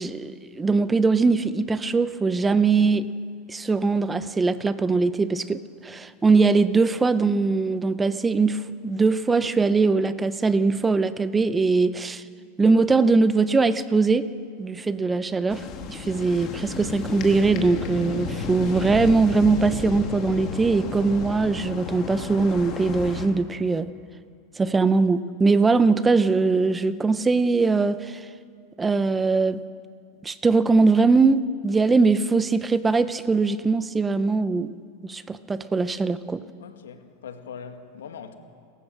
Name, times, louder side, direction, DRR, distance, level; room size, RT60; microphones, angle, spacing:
voice 1, 0.0-3.1 3.5-12.2 12.6-14.3 14.6-23.9 24.6-28.2 28.8-29.6 30.2-34.7 35.0-36.4, right 4 dB, 15° right, 0.8 m, -21 dB
sound 1, 15.5-23.3, left 5 dB, 45° left, 3.0 m, -33 dB
voice 2, 36.6-38.4, left 7 dB, 90° left, 2.0 m, -41 dB
29.5 x 14.0 x 7.6 m
hypercardioid pair, 115°, 0 cm